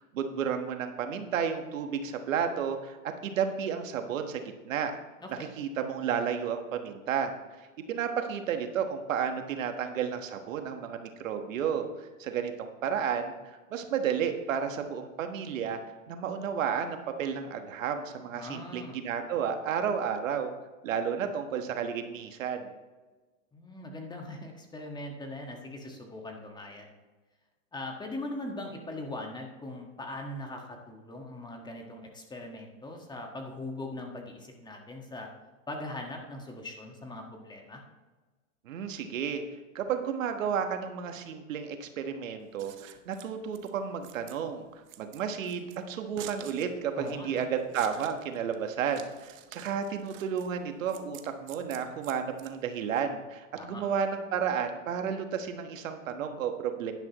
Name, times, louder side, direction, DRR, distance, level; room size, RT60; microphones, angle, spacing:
voice 1, 0.0-3.0 3.2-4.9 5.4-15.8 16.1-20.5 20.8-22.7 38.6-39.4 39.7-44.6 45.0-56.9, right 7 dB, 80° right, 6 dB, 1.5 m, -32 dB
voice 2, 18.3-19.0 23.5-26.9 27.7-35.3 35.7-37.8 46.9-47.4 53.6-53.8, left 1 dB, 10° left, 2 dB, 1.5 m, -40 dB
Scissors, 42.4-53.0, right 11 dB, 30° right, 0.8 m, -50 dB
10.5 x 10.5 x 3.0 m, 1.3 s
hypercardioid pair, 125°, 39 cm